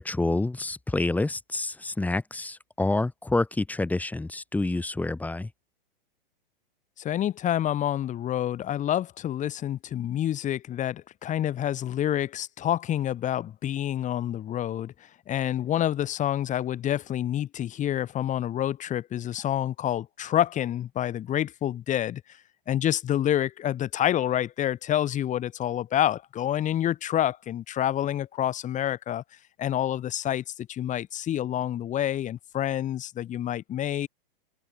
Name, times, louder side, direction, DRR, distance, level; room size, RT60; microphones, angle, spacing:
voice 1, 0.0-5.5, left 2 dB, 5° left, 1.2 m, -28 dB
voice 2, 7.0-14.9 15.3-22.2 22.7-29.2 29.6-34.1, left 11 dB, 25° left, 2.7 m, -28 dB
hypercardioid pair, 110°, 29 cm